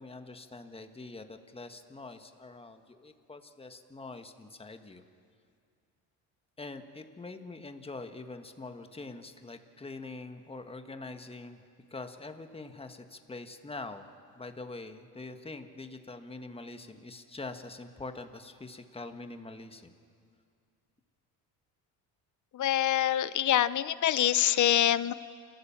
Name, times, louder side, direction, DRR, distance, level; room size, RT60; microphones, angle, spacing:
voice 1, 0.0-5.0 6.6-11.6 11.9-14.0 14.3-19.9, left 3 dB, 15° left, 7 dB, 1.5 m, -44 dB
voice 2, 22.5-25.1, left 12 dB, 45° left, 17 dB, 0.8 m, -25 dB
29.0 x 14.0 x 7.2 m, 2.3 s
supercardioid pair, 75°, 41 cm